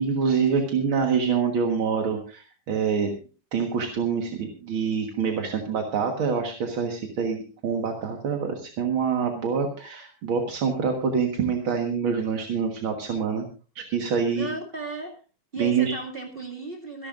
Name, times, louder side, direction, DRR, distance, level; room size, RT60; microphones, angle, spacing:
voice 1, 0.0-3.1 3.5-13.5 13.8-14.5 15.6-16.0, right 6 dB, 50° right, 2 dB, 1.9 m, -26 dB
voice 2, 14.3-15.2 15.5-17.1, right 3 dB, 20° right, 0 dB, 2.1 m, -35 dB
26.0 x 11.5 x 2.5 m, 0.35 s
omnidirectional pair, 3.7 m